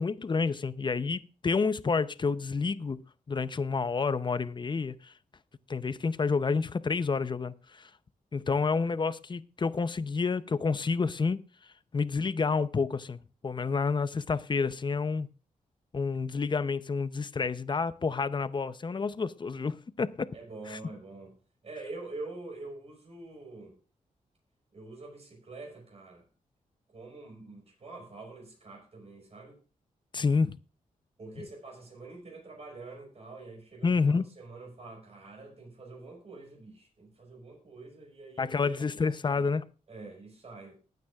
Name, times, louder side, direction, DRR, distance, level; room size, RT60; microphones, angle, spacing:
voice 1, 0.0-3.0 3.3-5.1 5.7-7.9 8.3-11.4 11.9-15.3 15.9-20.3 20.7-20.8 30.1-30.6 33.8-34.2 38.4-39.6, left 4 dB, 35° left, 0.7 m, -29 dB
voice 2, 20.3-21.3 21.6-23.7 24.7-26.2 26.9-29.6 31.2-39.5 39.9-40.8, right 3 dB, 45° right, 5.5 m, -46 dB
20.0 x 9.3 x 2.4 m
cardioid pair, 90°, 14 cm